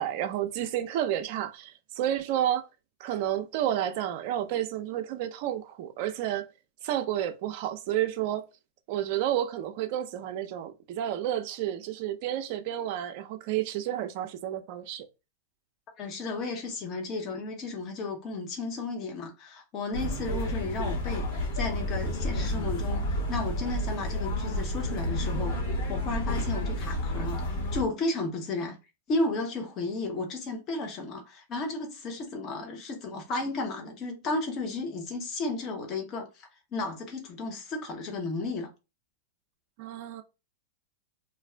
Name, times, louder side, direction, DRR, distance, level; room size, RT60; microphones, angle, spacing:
voice 1, 0.0-2.7 3.0-6.5 6.8-8.4 8.9-15.1 39.8-40.2, right 11 dB, 55° right, 0.5 m, -30 dB
voice 2, 16.0-21.3 21.5-23.0 23.3-25.6 25.9-27.4 27.7-28.8 29.1-38.7, left 3 dB, 35° left, 0.9 m, -33 dB
sound 1, 19.9-27.8, left 1 dB, 80° left, 1.0 m, -30 dB
2.5 x 2.3 x 3.2 m
hypercardioid pair, 120°, 0 cm